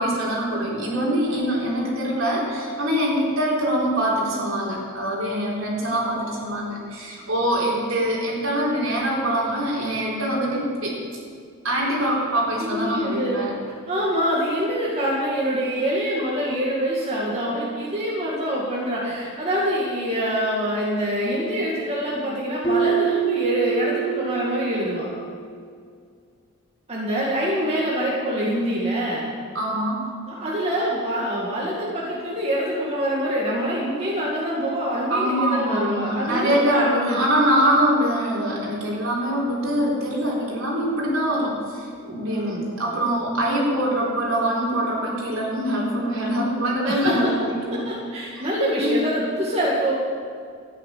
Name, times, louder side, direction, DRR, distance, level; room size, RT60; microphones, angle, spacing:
voice 1, 0.0-11.0 11.6-13.6 29.5-30.0 35.1-47.9 48.3-48.5 48.8-49.0, right 1 dB, 70° right, -5 dB, 4.0 m, -24 dB
voice 2, 1.3-1.9 12.6-13.5 13.9-25.1 26.9-29.3 30.3-37.2 42.2-42.7 46.8-47.3 47.7-49.9, equal, 30° right, -5 dB, 2.0 m, -25 dB
Keyboard (musical), 22.6-25.4, right 9 dB, 25° left, 0.9 m, -25 dB
13.5 x 9.7 x 6.7 m, 2.2 s
head